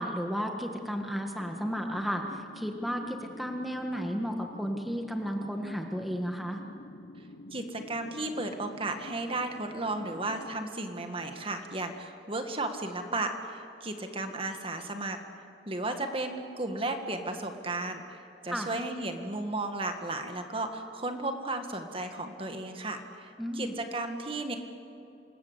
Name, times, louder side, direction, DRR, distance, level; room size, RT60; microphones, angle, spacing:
voice 1, 0.0-6.6 18.5-18.7 23.4-23.7, equal, ahead, 3 dB, 1.6 m, -33 dB
sound 1, 1.4-10.7, left 1 dB, 70° left, 1.1 m, -48 dB
voice 2, 7.5-15.2 15.7-23.3 23.6-24.6, right 2 dB, 30° right, 6 dB, 1.8 m, -34 dB
27.0 x 21.0 x 8.2 m, 2.8 s
head